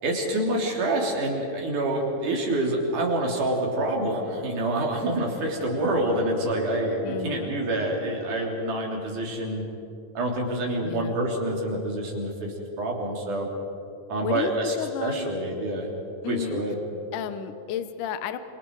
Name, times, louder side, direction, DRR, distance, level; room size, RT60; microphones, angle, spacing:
voice 1, 0.0-9.6 10.1-13.5 14.1-14.7 15.0-15.9 16.3-16.8, right 1 dB, 65° right, -1 dB, 4.8 m, -27 dB
Bowed string instrument, 5.3-9.7, right 2 dB, 55° left, 6.0 m, -42 dB
voice 2, 7.0-7.6 10.8-11.2 14.2-15.4 16.2-16.6 17.1-18.4, left 9 dB, 75° left, 11 dB, 2.3 m, -32 dB
28.5 x 27.0 x 4.8 m, 2.9 s
omnidirectional pair, 3.9 m